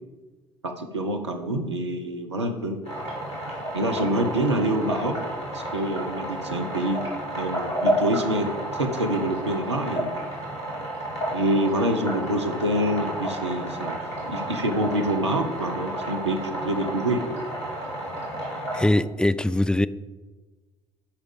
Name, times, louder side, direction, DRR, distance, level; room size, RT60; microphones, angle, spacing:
voice 1, 0.6-2.8 3.7-5.2 5.5-7.1 7.3-10.1 11.3-14.0 14.2-17.2, right 1 dB, 85° right, 4 dB, 0.8 m, -26 dB
sound 1, 2.8-18.8, right 1 dB, 85° left, 2.1 m, -31 dB
voice 2, 18.7-19.9, left 1 dB, 5° left, 15 dB, 0.3 m, -22 dB
7.2 x 5.0 x 7.0 m, 1.3 s
figure-of-eight pair, 50°, 14 cm